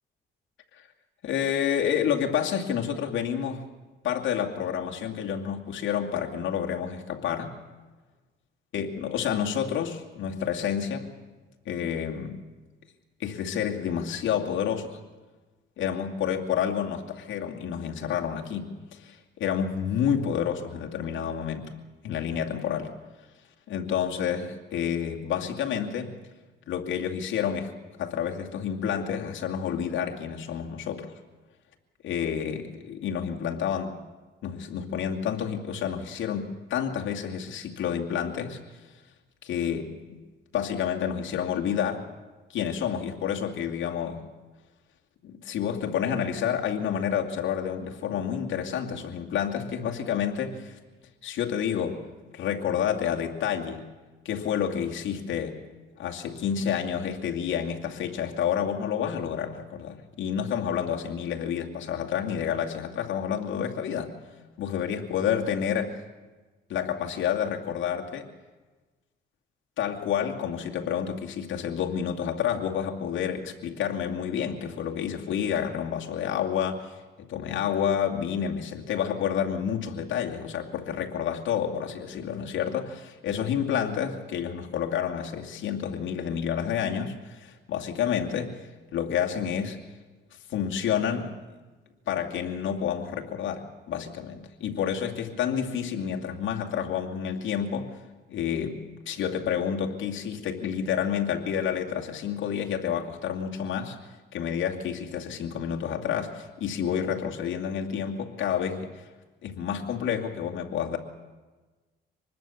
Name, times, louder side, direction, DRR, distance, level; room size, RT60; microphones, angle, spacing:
voice 1, 1.2-3.7 4.0-7.6 8.7-11.2 11.7-12.4 13.2-15.0 15.8-21.7 22.0-22.9 23.7-26.1 26.7-27.7 28.0-31.1 32.0-34.0 34.4-38.6 39.4-40.2 40.5-42.1 42.5-44.2 45.2-50.8 51.2-52.0 52.3-53.9 54.2-55.6 56.0-64.1 64.6-66.0 66.7-68.3 69.8-89.8 90.5-91.3 92.1-98.0 98.3-104.0 104.3-109.0 109.4-111.0, left 8 dB, 75° left, 1 dB, 2.5 m, -29 dB
25.5 x 20.5 x 7.2 m, 1.3 s
cardioid pair, 90°, 20 cm